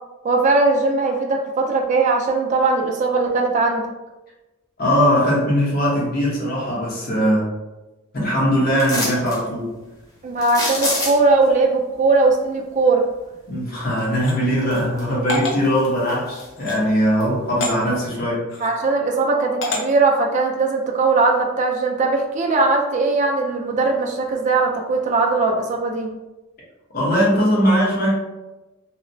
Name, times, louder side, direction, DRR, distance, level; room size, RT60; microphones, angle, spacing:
voice 1, 0.2-3.9 10.2-13.0 18.6-26.1, right 3 dB, 35° right, 1 dB, 0.3 m, -19 dB
voice 2, 4.8-7.5 8.1-9.7 13.5-18.4 26.9-28.1, equal, 50° left, -5 dB, 0.9 m, -20 dB
sound 1, 8.8-9.4 10.4-11.4 14.0-14.1 14.6-15.3 15.6-16.7 17.2-17.3, left 1 dB, 15° left, 0.5 m, -26 dB
sound 2, 14.2-14.4 15.3-15.6 16.6-16.8 17.6-17.7 18.5-18.7 19.6-19.8, left 2 dB, 65° left, 0.6 m, -26 dB
2.8 x 2.0 x 2.6 m, 1.1 s
head